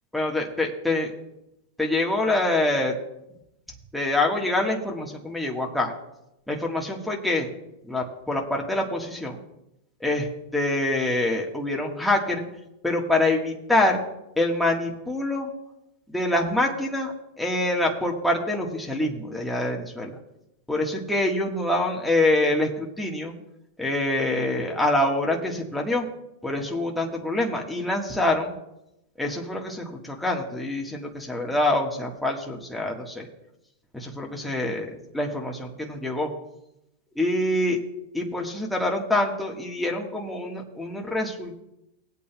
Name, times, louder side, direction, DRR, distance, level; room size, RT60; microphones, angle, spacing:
voice 1, 0.1-1.1 1.8-2.9 3.9-5.9 6.5-7.5 7.8-9.4 10.0-12.4 12.8-14.0 14.4-15.5 16.1-20.2 20.7-23.3 23.8-26.1 26.4-28.5 29.2-33.3 33.9-36.3 37.1-37.8 38.1-41.6, left 2 dB, 5° left, -1 dB, 1.5 m, -25 dB
20.0 x 8.4 x 2.3 m, 0.88 s
hypercardioid pair, 120°, 0 cm